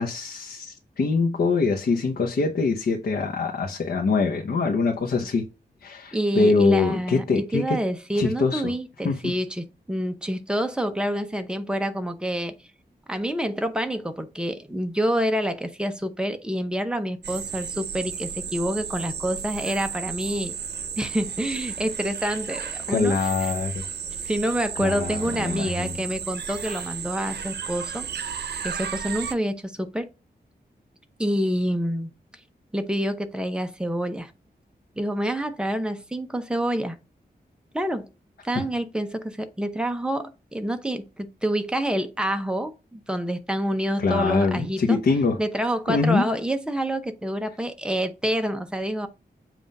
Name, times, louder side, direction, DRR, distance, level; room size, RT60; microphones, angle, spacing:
voice 1, 0.0-5.4 5.8-7.8 8.1-8.7 9.0-9.2 22.9-23.8 24.8-26.0 38.5-38.6 44.0-45.4 45.9-46.2, left 4 dB, 70° left, 0.9 m, -24 dB
voice 2, 6.1-12.5 13.1-20.5 21.0-23.3 24.3-28.1 28.6-30.1 31.2-32.1 32.7-34.3 35.0-37.0 37.7-38.1 38.4-45.0 45.4-49.1, equal, 5° right, 0.8 m, -27 dB
sound 1, 17.2-29.3, right 7 dB, 90° right, 0.6 m, -33 dB
7.4 x 2.6 x 5.3 m
wide cardioid pair, 135°, 17 cm